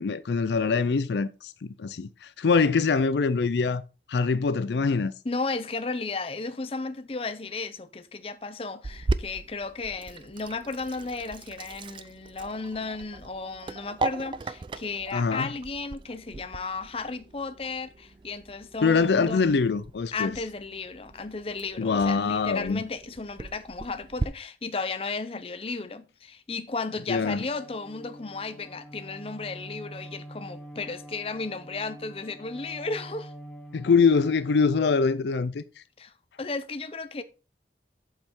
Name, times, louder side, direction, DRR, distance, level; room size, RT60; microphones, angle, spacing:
voice 1, 0.0-1.5 1.8-3.8 4.1-5.1 15.1-15.5 18.8-20.3 21.8-22.8 27.1-27.4 33.7-35.6, left 4 dB, 75° left, 0.4 m, -24 dB
voice 2, 5.2-19.4 20.1-33.3 36.0-36.1 36.4-37.2, left 3 dB, 30° left, 0.6 m, -34 dB
Sink (filling or washing), 8.8-24.3, right 3 dB, 25° right, 0.3 m, -38 dB
Bowed string instrument, 26.7-35.1, right 1 dB, 10° left, 2.5 m, -45 dB
7.6 x 5.4 x 4.4 m
head